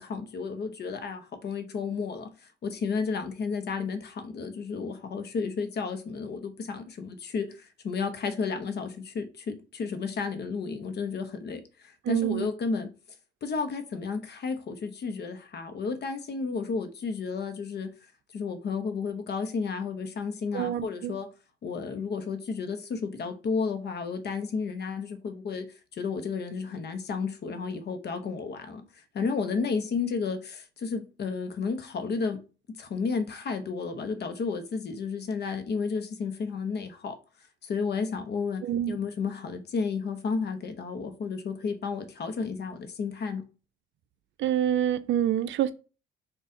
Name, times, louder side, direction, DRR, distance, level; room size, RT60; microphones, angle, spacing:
voice 1, 0.0-2.3 2.6-12.9 13.4-17.9 18.3-21.3 21.6-28.9 29.1-32.4 32.8-37.2 37.6-43.5, left 5 dB, 55° left, 0.8 m, -32 dB
voice 2, 12.1-12.5 20.5-21.2 38.6-39.0 44.4-45.7, right 10 dB, 70° right, 0.4 m, -27 dB
4.0 x 2.4 x 3.7 m
cardioid pair, 90°, 20 cm